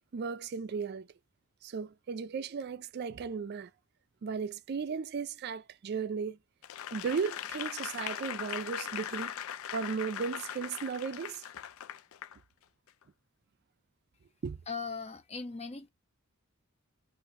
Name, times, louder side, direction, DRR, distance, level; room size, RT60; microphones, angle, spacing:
voice 1, 0.1-1.1 1.6-3.7 4.2-6.4 6.9-9.3 9.7-11.4 14.4-14.6, right 5 dB, 50° right, 0.4 m, -35 dB
Applause / Crowd, 6.6-12.4 12.9-13.0, left 10 dB, 75° left, 0.4 m, -40 dB
voice 2, 14.7-15.9, left 4 dB, 30° left, 0.6 m, -39 dB
2.9 x 2.5 x 3.1 m
head